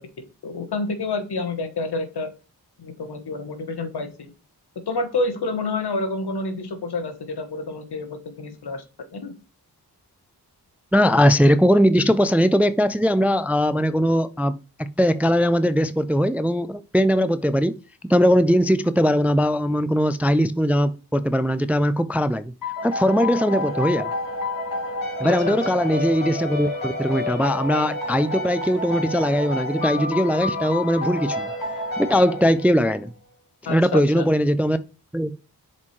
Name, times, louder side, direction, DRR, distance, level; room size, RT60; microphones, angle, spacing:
voice 1, 0.0-2.3 2.8-4.3 4.8-8.8 9.1-9.3 25.2-25.6 33.6-34.2, left 3 dB, 70° left, 1.2 m, -29 dB
voice 2, 10.9-17.8 18.1-22.5 22.8-24.1 25.2-31.5 32.0-33.1 33.7-34.8 35.1-35.4, equal, 5° right, 0.3 m, -20 dB
sound 1, 22.6-33.0, left 2 dB, 55° left, 2.7 m, -29 dB
7.1 x 4.3 x 3.2 m
cardioid pair, 50°, 40 cm